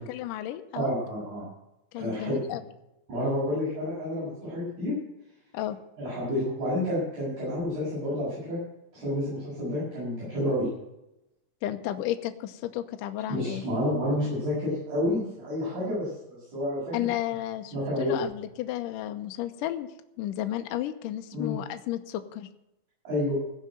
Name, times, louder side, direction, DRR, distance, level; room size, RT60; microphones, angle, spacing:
voice 1, 0.0-1.0 1.9-2.6 5.5-5.8 11.6-13.6 16.9-19.9 20.2-22.5, left 13 dB, 75° left, 8 dB, 2.2 m, -33 dB
voice 2, 0.7-1.5 1.9-2.4 3.1-5.0 6.0-8.6 8.9-10.7 13.3-17.1 17.7-18.1 21.3-21.6 23.0-23.3, left 1 dB, 50° right, -9 dB, 7.9 m, -29 dB
16.0 x 6.5 x 9.2 m, 0.89 s
omnidirectional pair, 4.4 m